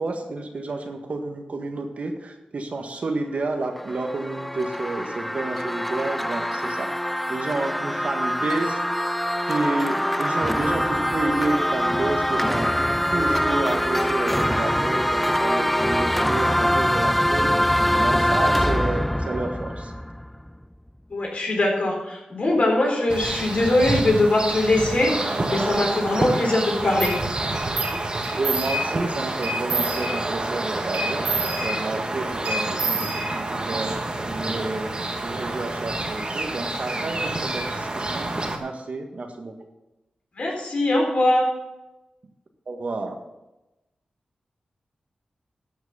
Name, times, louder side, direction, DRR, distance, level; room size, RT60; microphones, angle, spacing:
voice 1, 0.0-6.9 7.3-8.8 9.5-12.7 13.1-17.5 18.0-19.9 28.4-31.2 31.6-34.0 34.3-34.9 35.2-38.3 38.6-39.5 42.7-43.2, right 2 dB, 60° right, 4 dB, 1.5 m, -30 dB
sound 1, 3.5-20.5, equal, 5° left, 0.3 m, -24 dB
voice 2, 21.1-27.1 40.3-41.5, left 1 dB, 55° left, -1 dB, 4.0 m, -22 dB
sound 2, 23.1-38.6, right 2 dB, 35° right, 1.6 m, -28 dB
sound 3, 27.0-27.2 27.8-28.0 28.2-29.0 29.4-30.4 30.9-32.1 32.5-33.7, right 2 dB, 85° right, 2.7 m, -28 dB
12.0 x 6.1 x 7.1 m, 0.99 s
cardioid pair, 65°, 3 cm